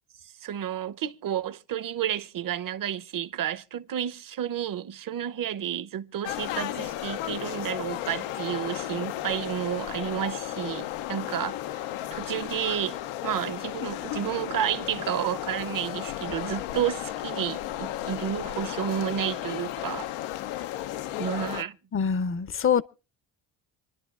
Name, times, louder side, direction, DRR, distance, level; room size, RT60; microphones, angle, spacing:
voice 1, 0.2-20.1 20.6-20.7 21.2-21.8, right 10 dB, 45° right, 0.7 m, -31 dB
sound 1, 6.2-21.6, left 13 dB, 85° left, 0.7 m, -34 dB
voice 2, 21.9-22.8, left 7 dB, 25° left, 0.6 m, -24 dB
26.5 x 10.5 x 2.4 m
supercardioid pair, 70°, 48 cm